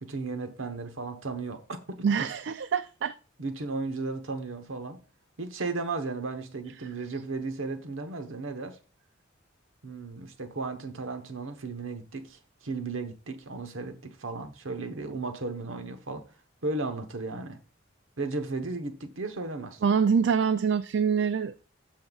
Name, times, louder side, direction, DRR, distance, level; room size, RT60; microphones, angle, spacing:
voice 1, 0.0-2.3 3.4-5.0 5.4-8.8 9.8-16.2 16.6-17.6 18.2-19.8, right 3 dB, 85° right, 1.0 m, -35 dB
voice 2, 2.0-3.1 19.8-21.6, right 6 dB, 65° right, 0.3 m, -25 dB
14.5 x 5.7 x 2.4 m
head